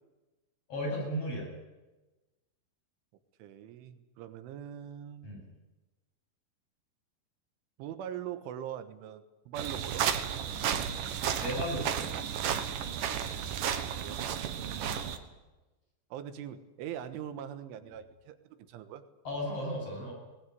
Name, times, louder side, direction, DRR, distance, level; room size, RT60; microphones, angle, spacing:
voice 1, 0.7-1.5 5.2-5.4 11.4-12.1 14.9-15.1 19.2-20.1, equal, 30° left, -1 dB, 8.9 m, -35 dB
voice 2, 3.4-5.4 7.8-10.0 14.0-14.5 16.1-19.0, right 10 dB, 90° right, 10 dB, 3.8 m, -42 dB
sound 1, 9.6-15.2, right 8 dB, 65° right, 2.4 m, -33 dB
19.5 x 19.5 x 9.5 m, 1.1 s
omnidirectional pair, 5.4 m